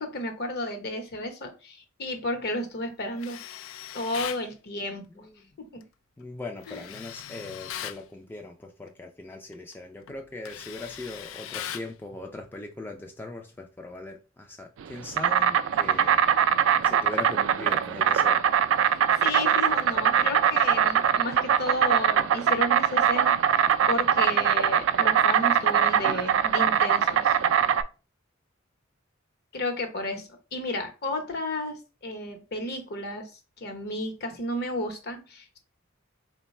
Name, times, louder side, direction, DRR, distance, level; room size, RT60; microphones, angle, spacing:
voice 1, 0.0-3.4 3.9-5.2 5.6-5.8 6.7-6.8 19.2-23.4 23.9-27.4 29.5-33.3 33.6-35.6, left 1 dB, 55° left, 0.9 m, -32 dB
Tools, 3.2-4.5 6.6-8.0 9.5-9.7 10.1-11.9, left 10 dB, 85° left, 0.3 m, -39 dB
voice 2, 5.1-5.5 6.2-16.3 16.8-18.4, left 2 dB, 10° left, 0.3 m, -40 dB
Insect, 14.8-27.8, right 8 dB, 65° right, 0.3 m, -22 dB
3.9 x 2.2 x 4.1 m
head